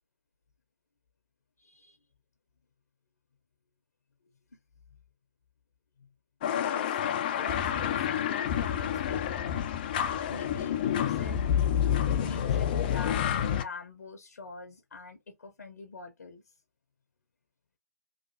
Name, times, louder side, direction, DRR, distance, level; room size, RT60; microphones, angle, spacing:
voice 1, 1.6-2.0 6.0-6.1 6.5-7.0 7.4-9.7 10.2-11.5 12.1-16.4, left 3 dB, 65° left, 0.7 m, -44 dB
sound 1, 6.4-13.6, left 9 dB, 30° left, 0.3 m, -28 dB
3.1 x 2.5 x 2.6 m
figure-of-eight pair, 130°, 10 cm